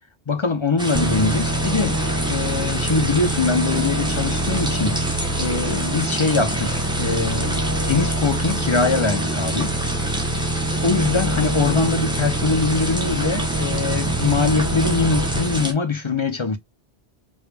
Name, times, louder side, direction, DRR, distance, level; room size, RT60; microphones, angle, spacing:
voice 1, 0.3-2.0 2.3-5.1 5.4-9.8 10.8-16.6, left 4 dB, 35° left, 0.5 m, -22 dB
sound 1, 0.8-15.7, right 1 dB, 5° right, 0.8 m, -28 dB
sound 2, 0.9-15.7, right 1 dB, 25° right, 0.4 m, -25 dB
5.0 x 2.3 x 3.3 m
omnidirectional pair, 1.1 m